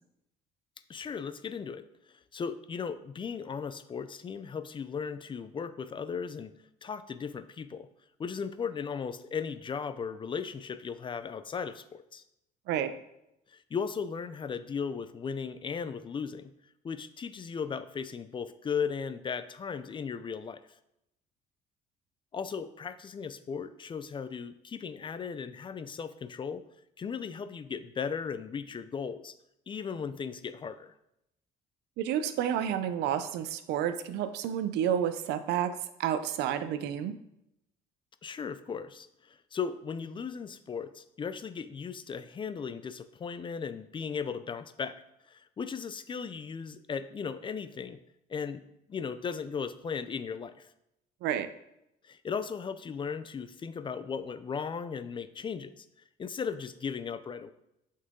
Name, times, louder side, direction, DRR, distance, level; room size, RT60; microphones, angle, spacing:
voice 1, 0.9-1.9 2.3-6.5 6.8-7.9 8.2-12.2 13.5-16.5 16.8-20.6 22.3-26.6 27.0-29.3 29.7-30.9 38.2-45.0 45.3-48.0 48.3-48.6 48.9-50.7 52.0-55.9 56.2-57.5, left 6 dB, 30° left, 12 dB, 0.4 m, -36 dB
voice 2, 32.0-35.7 36.0-37.2 51.2-51.5, right 9 dB, 85° right, 11 dB, 0.6 m, -30 dB
6.5 x 5.5 x 3.7 m, 0.82 s
cardioid pair, 110°, 17 cm